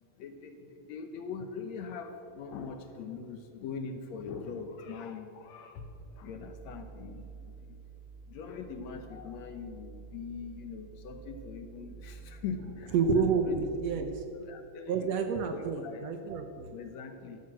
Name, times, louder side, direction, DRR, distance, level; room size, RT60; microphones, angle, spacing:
voice 1, 0.2-5.8 6.2-7.2 8.3-13.6 14.0-14.1 14.4-15.1 15.5-16.1 16.7-17.4, left 5 dB, 70° left, 7 dB, 1.8 m, -42 dB
sound 1, 5.8-14.2, right 5 dB, 10° left, 0.8 m, -49 dB
voice 2, 12.9-14.1 14.9-16.7, right 5 dB, 75° right, 6 dB, 1.6 m, -29 dB
13.5 x 12.5 x 7.5 m, 2.6 s
omnidirectional pair, 3.9 m